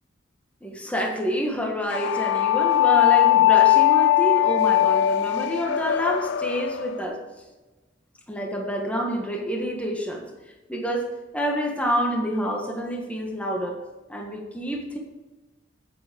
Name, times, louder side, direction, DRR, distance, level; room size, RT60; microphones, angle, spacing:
voice 1, 0.6-7.2 8.3-10.2 10.7-11.1 11.3-13.7 14.1-15.0, equal, 5° left, 0 dB, 1.6 m, -27 dB
sound 1, 1.9-7.0, left 13 dB, 60° left, 0.3 m, -20 dB
9.2 x 8.7 x 5.2 m, 1.1 s
head